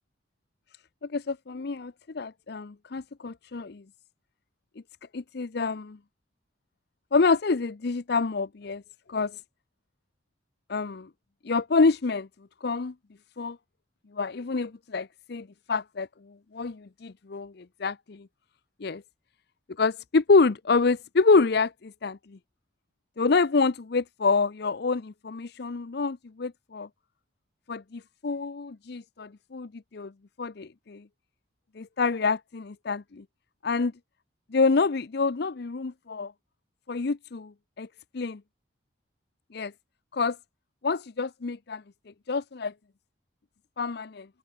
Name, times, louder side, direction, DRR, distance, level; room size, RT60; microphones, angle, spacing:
voice 1, 1.1-3.8 5.1-6.0 7.1-8.8 9.1-9.4 10.7-11.1 11.4-12.3 12.6-12.9 13.4-13.6 14.1-16.1 16.5-18.3 18.8-19.0 19.8-22.4 23.2-26.9 27.7-30.1 30.4-31.0 31.8-33.2 33.6-33.9 34.5-36.3 36.9-37.9 38.1-38.4 39.5-39.7 40.1-40.4 40.8-41.8 42.3-42.7 43.8-44.3, left 4 dB, 55° left, 0.6 m, -27 dB
open air
head